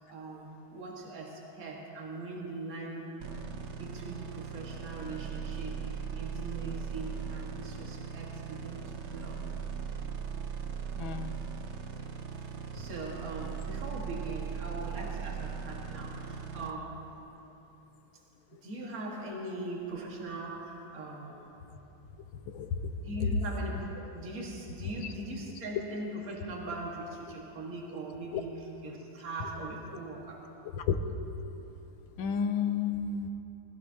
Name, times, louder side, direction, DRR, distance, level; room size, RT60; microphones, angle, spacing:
voice 1, 0.0-3.2 3.8-9.4 12.3-17.0 18.6-21.5 23.0-23.8 24.1-30.5, right 2 dB, 45° right, -3 dB, 2.2 m, -41 dB
sound 1, 3.2-16.7, right 6 dB, 80° right, 0.6 m, -39 dB
voice 2, 10.9-11.3 22.5-22.7 23.2-23.3 28.3-28.4 30.8-31.0 32.2-33.3, left 7 dB, 75° left, 8 dB, 1.5 m, -31 dB
21.5 x 15.0 x 2.9 m, 3.0 s
omnidirectional pair, 2.3 m